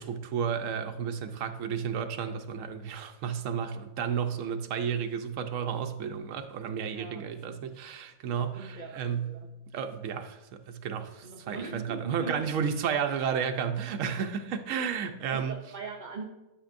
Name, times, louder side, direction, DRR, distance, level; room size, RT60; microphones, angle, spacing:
voice 1, 0.0-9.4 9.7-15.5, right 7 dB, 70° right, 7 dB, 1.0 m, -32 dB
voice 2, 6.9-7.2 8.6-9.5 11.2-12.4 15.3-16.3, right 4 dB, 50° right, 0 dB, 0.6 m, -40 dB
11.5 x 5.2 x 2.6 m, 1.0 s
omnidirectional pair, 1.5 m